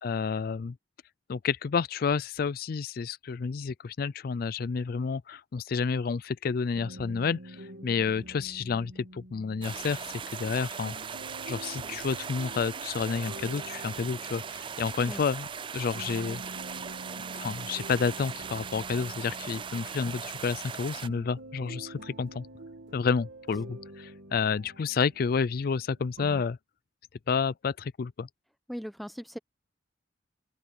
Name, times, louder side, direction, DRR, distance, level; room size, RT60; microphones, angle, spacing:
voice 1, 0.0-0.8 1.3-10.9 11.5-15.5 15.7-16.4 17.3-22.5 22.9-26.6 27.3-28.3, left 5 dB, 50° left, 0.4 m, -30 dB
sound 1, 6.7-26.4, right 1 dB, 85° right, 2.3 m, -47 dB
sound 2, 9.6-21.1, right 6 dB, 25° right, 0.4 m, -39 dB
voice 2, 28.7-29.4, equal, ahead, 0.8 m, -38 dB
open air
head